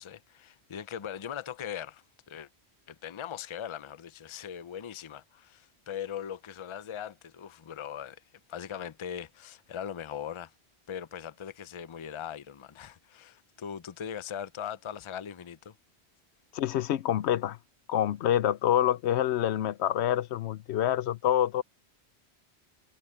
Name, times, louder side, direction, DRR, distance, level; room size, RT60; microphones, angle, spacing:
voice 1, 0.0-2.5 2.9-8.2 8.5-10.5 10.9-15.8, left 9 dB, 35° left, 0.5 m, -40 dB
voice 2, 16.5-17.6 17.9-21.6, left 11 dB, 80° left, 0.9 m, -27 dB
omnidirectional pair, 1.1 m